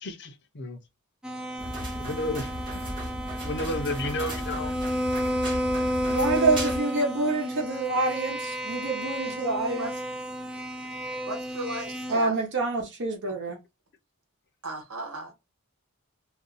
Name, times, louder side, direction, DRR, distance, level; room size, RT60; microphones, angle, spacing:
voice 1, 0.0-0.8 2.0-2.5 3.4-4.7, left 1 dB, 55° left, 0.6 m, -32 dB
sound 1, 1.2-12.2, equal, 5° right, 0.3 m, -32 dB
sound 2, 1.6-6.8, equal, 25° right, 1.2 m, -36 dB
voice 2, 6.1-9.9 12.1-13.6, right 3 dB, 55° right, 0.9 m, -27 dB
voice 3, 9.7-10.0 11.2-12.4 14.6-15.3, right 2 dB, 85° right, 1.2 m, -36 dB
2.6 x 2.2 x 3.8 m
head